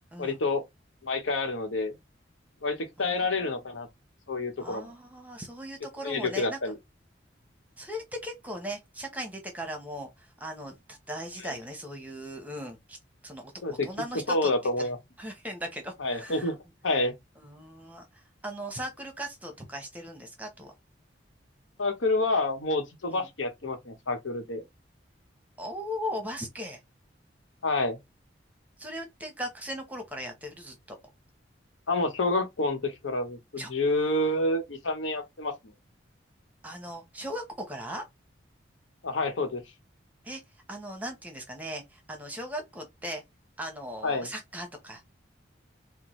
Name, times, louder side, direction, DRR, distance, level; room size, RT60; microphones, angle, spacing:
voice 1, 0.2-0.6 1.0-1.9 2.6-3.9 4.3-4.9 6.0-6.8 11.4-11.5 13.6-13.9 14.3-15.0 16.0-16.6 16.8-17.1 21.8-24.6 27.6-28.0 31.9-35.5 39.0-39.6 44.0-44.3, left 2 dB, 90° left, 1.0 m, -28 dB
voice 2, 3.0-3.5 4.6-6.6 7.8-13.0 13.2-14.5 14.8-14.9 15.2-16.5 17.4-20.7 23.1-23.3 25.6-26.8 28.8-31.0 33.6-33.7 36.6-38.0 40.2-40.4 40.7-43.2 43.6-45.0, equal, 10° right, 0.9 m, -38 dB
4.4 x 2.2 x 3.1 m
head